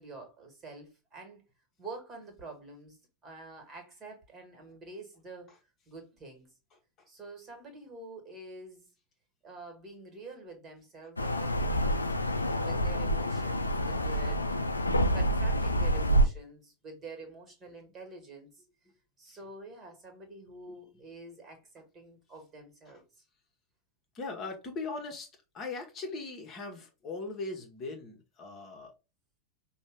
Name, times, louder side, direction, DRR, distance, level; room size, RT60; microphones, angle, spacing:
voice 1, 0.0-1.4 1.8-3.0 3.2-5.5 5.9-6.5 7.1-8.9 9.4-12.0 12.6-18.5 19.2-23.0, right 3 dB, 25° right, 1.6 m, -47 dB
voice 2, 6.7-7.1 19.3-19.4 20.7-20.8 22.9-23.0 24.1-28.9, left 3 dB, 30° left, 1.1 m, -40 dB
sound 1, 11.2-16.3, right 1 dB, 80° left, 0.5 m, -27 dB
5.2 x 2.3 x 3.4 m
figure-of-eight pair, 90°, 0 cm